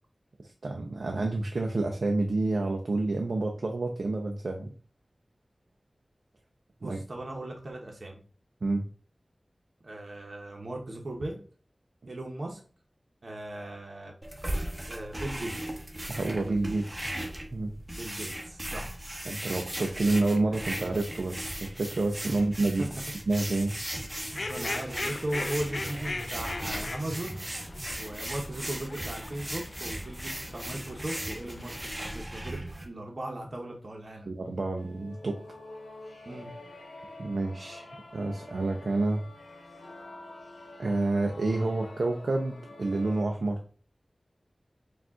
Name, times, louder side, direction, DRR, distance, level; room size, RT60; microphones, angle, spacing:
voice 1, 0.4-4.7 6.8-7.0 8.6-8.9 16.1-17.1 17.5-17.8 19.3-22.9 23.3-23.7 34.3-35.4 37.2-39.2 40.8-43.6, right 2 dB, 75° right, 2 dB, 0.5 m, -29 dB
voice 2, 6.8-8.2 9.8-11.4 12.1-12.6 13.2-14.1 14.9-15.8 17.9-19.0 22.3-22.4 24.3-27.4 28.0-34.3 36.2-36.5, right 1 dB, 55° right, 0 dB, 0.9 m, -38 dB
sound 1, 14.2-32.8, right 1 dB, 20° right, 0.9 m, -37 dB
Fowl, 24.2-32.0, left 2 dB, 60° left, 0.4 m, -40 dB
sound 2, 34.8-43.2, left 2 dB, 80° left, 0.9 m, -47 dB
4.8 x 2.4 x 3.6 m, 0.40 s
wide cardioid pair, 75°, 0 cm